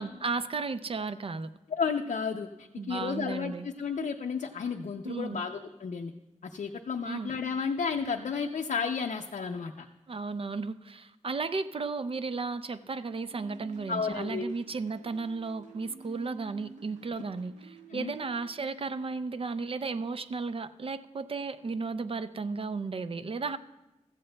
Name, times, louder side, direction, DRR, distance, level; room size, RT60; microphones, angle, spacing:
voice 1, 0.0-1.5 2.8-3.7 5.0-5.4 7.1-7.3 10.1-23.6, right 4 dB, 45° right, 12 dB, 0.4 m, -34 dB
voice 2, 1.7-6.1 6.5-9.9 13.9-14.5 17.9-18.1, left 5 dB, 80° left, 3 dB, 0.5 m, -32 dB
sound 1, 13.3-18.5, right 4 dB, 75° right, 0.8 m, -51 dB
15.5 x 14.5 x 2.2 m, 1.0 s
wide cardioid pair, 120°, 13 cm